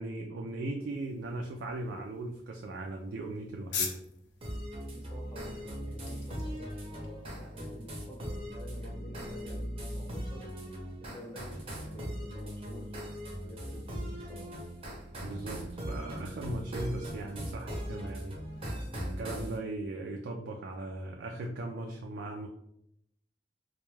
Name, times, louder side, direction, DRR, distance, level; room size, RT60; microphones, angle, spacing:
voice 1, 0.0-4.0 15.2-18.4 19.2-22.5, right 2 dB, 80° right, 1 dB, 0.3 m, -38 dB
sound 1, 0.9-8.0, left 5 dB, 75° left, 0.5 m, -44 dB
sound 2, 4.4-19.6, equal, 35° right, 0.6 m, -39 dB
voice 2, 4.9-10.5 11.0-13.0 13.4-14.6, equal, 15° left, -3 dB, 0.7 m, -49 dB
2.2 x 2.2 x 3.0 m, 0.74 s
head